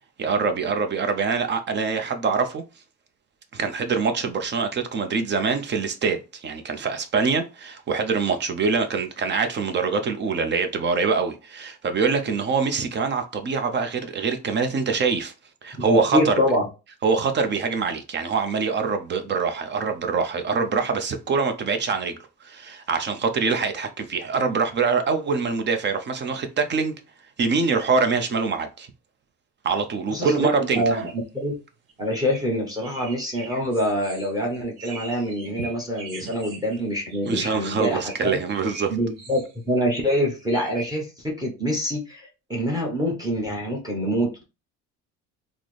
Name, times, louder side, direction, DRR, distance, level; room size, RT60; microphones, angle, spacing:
voice 1, 0.2-2.6 3.5-15.3 15.6-16.3 17.0-22.2 22.4-27.0 27.4-28.9 29.6-31.0 36.2-36.3 37.3-38.9, right 5 dB, 30° right, 0.5 m, -24 dB
voice 2, 15.7-16.6 30.1-31.5 32.0-38.4 38.9-39.4 39.7-44.4, equal, 10° right, 0.9 m, -25 dB
sound 1, 31.0-31.1 31.9-32.0 32.2-32.4 32.7-36.8 37.1-37.5 37.9-39.5 39.9-40.9, right 3 dB, 65° right, 1.1 m, -41 dB
3.8 x 2.0 x 3.2 m
cardioid pair, 125°, 35 cm